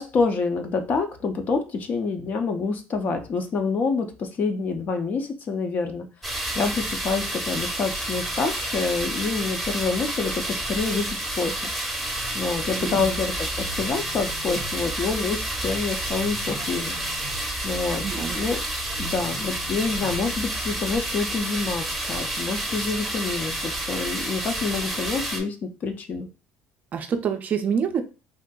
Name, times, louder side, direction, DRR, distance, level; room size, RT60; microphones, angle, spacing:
voice 1, 0.0-6.1 6.5-11.1 11.4-11.7 12.3-17.0 17.6-18.6 19.0-26.3, left 4 dB, 40° left, 6 dB, 0.6 m, -27 dB
sound 1, 6.2-25.4, right 1 dB, ahead, 0.8 m, -30 dB
voice 2, 12.8-13.1 18.0-18.4 26.9-28.0, right 7 dB, 40° right, 6 dB, 0.4 m, -26 dB
sound 2, 13.0-21.0, equal, 90° left, 1.2 m, -39 dB
3.6 x 2.5 x 2.2 m, 0.33 s
cardioid pair, 130°, 4 cm